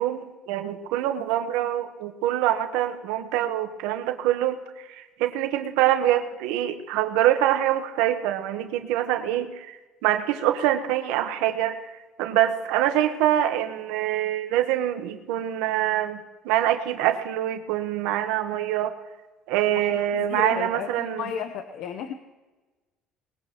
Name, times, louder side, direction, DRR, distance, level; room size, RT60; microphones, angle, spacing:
voice 1, 0.0-4.6 4.9-9.7 10.0-11.7 12.2-18.9 19.5-21.2, right 12 dB, 85° right, 7 dB, 1.2 m, -25 dB
voice 2, 19.7-22.1, left 8 dB, 70° left, 7 dB, 1.0 m, -33 dB
20.5 x 20.0 x 3.1 m, 1.2 s
cardioid pair, 115°, 0 cm